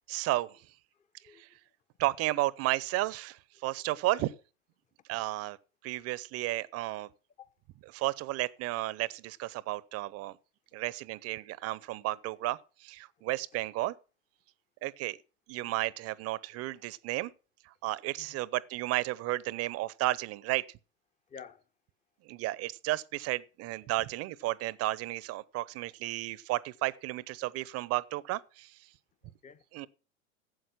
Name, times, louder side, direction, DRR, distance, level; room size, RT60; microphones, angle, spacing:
voice 1, 0.1-0.7 1.3-1.5 2.0-4.3 5.1-5.6 5.8-7.1 7.9-10.4 10.7-13.9 14.8-15.2 15.5-17.3 17.6-20.8 22.2-28.9 29.7-29.9, right 17 dB, 40° right, 0.7 m, -33 dB
voice 2, 1.2-1.6 3.6-3.7 4.1-4.3 7.4-7.5 18.2-18.4 21.3-21.6 23.9-24.0 29.2-29.9, left 7 dB, 20° left, 0.8 m, -51 dB
13.0 x 7.7 x 5.9 m
hypercardioid pair, 95°, 38 cm